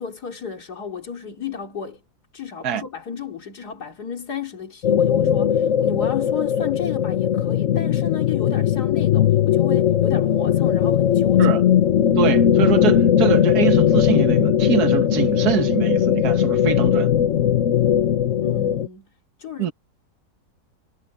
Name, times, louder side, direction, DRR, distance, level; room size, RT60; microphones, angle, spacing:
voice 1, 0.0-2.0 2.3-11.6 18.4-19.1 19.4-19.7, left 7 dB, 90° left, 3.2 m, -33 dB
sound 1, 4.8-18.9, left 9 dB, 60° left, 1.1 m, -19 dB
voice 2, 12.2-17.1 19.6-19.7, right 10 dB, 80° right, 1.7 m, -24 dB
omnidirectional pair, 1.6 m